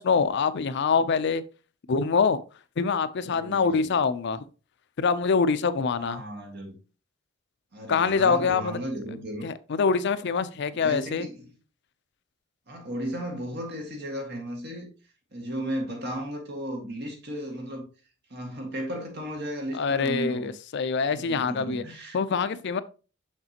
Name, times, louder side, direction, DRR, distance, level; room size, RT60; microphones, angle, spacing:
voice 1, 0.0-1.4 1.9-2.4 2.8-4.4 5.0-6.2 7.9-8.7 9.4-11.3 19.7-21.8 22.1-22.8, left 5 dB, 60° left, 0.5 m, -25 dB
voice 2, 3.3-3.9 6.0-6.8 7.7-9.5 10.7-11.5 12.7-14.9 15.3-17.9 18.3-20.5 21.1-22.2, equal, 55° right, 1.9 m, -35 dB
6.6 x 5.8 x 2.9 m
head